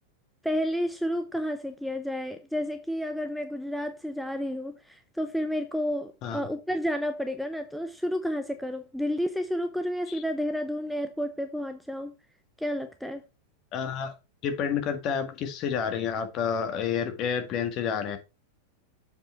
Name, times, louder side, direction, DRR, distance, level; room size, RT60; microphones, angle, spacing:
voice 1, 0.4-12.1 12.6-13.2, equal, ahead, 0.7 m, -31 dB
voice 2, 13.7-14.1 14.4-18.2, left 7 dB, 35° left, 1.8 m, -29 dB
7.5 x 5.2 x 4.5 m
figure-of-eight pair, 90°, 0 cm